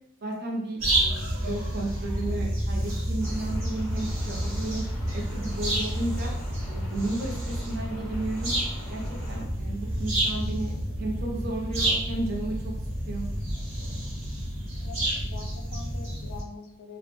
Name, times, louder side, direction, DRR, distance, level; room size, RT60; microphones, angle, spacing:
voice 1, 0.2-4.8 5.1-6.3 6.7-8.5 8.9-9.0 9.3-12.7 13.1-13.3, right 2 dB, 50° right, -1 dB, 0.5 m, -33 dB
sound 1, 0.8-16.4, right 1 dB, 75° right, 0.9 m, -30 dB
sound 2, 3.2-9.4, left 1 dB, 5° left, 0.6 m, -45 dB
voice 2, 14.8-17.0, left 4 dB, 80° left, 3 dB, 0.3 m, -44 dB
2.4 x 2.0 x 2.9 m, 0.79 s
head